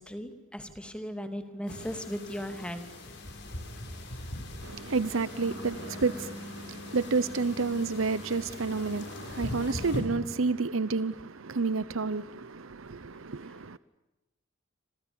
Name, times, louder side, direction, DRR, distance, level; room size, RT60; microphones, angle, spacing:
voice 1, 0.0-2.8, equal, 5° left, 2.9 m, -37 dB
sound 1, 1.7-10.0, left 1 dB, 60° left, 7.1 m, -41 dB
voice 2, 4.6-13.8, right 4 dB, 85° right, 0.9 m, -30 dB
29.0 x 27.5 x 7.0 m
head